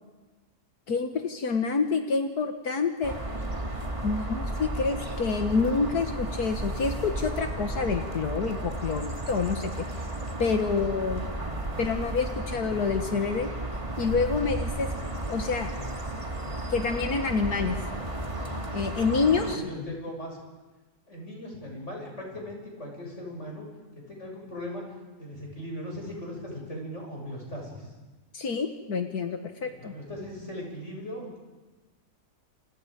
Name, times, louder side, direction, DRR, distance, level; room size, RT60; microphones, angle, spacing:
voice 1, 0.9-3.1 4.0-9.8 10.4-11.2 11.8-13.5 14.0-14.9 15.2-15.7 16.7-17.8 18.7-19.9 28.3-29.9, left 4 dB, 75° left, 5 dB, 1.9 m, -27 dB
sound 1, 3.0-19.6, right 1 dB, 20° right, 2.1 m, -33 dB
voice 2, 19.1-20.4 21.1-23.7 23.9-24.8 25.2-27.9 29.6-31.4, equal, 45° left, -1 dB, 7.7 m, -39 dB
29.5 x 26.5 x 5.2 m, 1.2 s
omnidirectional pair, 1.7 m